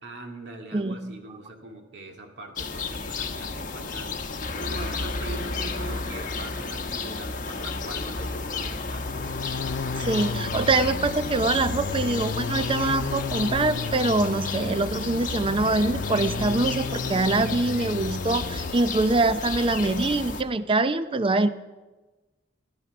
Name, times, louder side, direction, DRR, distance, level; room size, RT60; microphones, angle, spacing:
voice 1, 0.0-4.2 4.6-9.2, right 1 dB, 65° right, 3 dB, 2.2 m, -42 dB
voice 2, 0.7-1.1 10.0-21.5, right 2 dB, 30° right, 12 dB, 0.6 m, -24 dB
sound 1, 2.6-20.4, left 4 dB, 50° left, 1.0 m, -32 dB
sound 2, 8.8-18.8, left 4 dB, 70° left, 0.6 m, -33 dB
16.5 x 12.0 x 5.9 m, 1.2 s
head